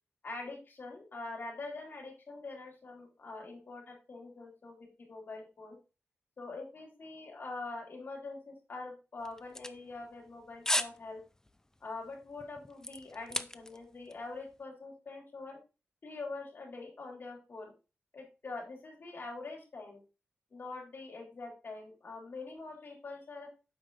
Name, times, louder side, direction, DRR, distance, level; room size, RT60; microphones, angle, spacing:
voice 1, 0.2-5.8 6.4-11.2 11.8-15.6 16.0-17.7 18.1-20.0 20.5-23.5, left 3 dB, 50° left, -1 dB, 3.7 m, -44 dB
sound 1, 9.2-10.3 10.6-11.0 11.3-11.6 12.1-13.9 14.1-14.2, left 1 dB, 10° left, 0.5 m, -34 dB
8.4 x 5.3 x 4.0 m, 0.31 s
wide cardioid pair, 130°, 5 cm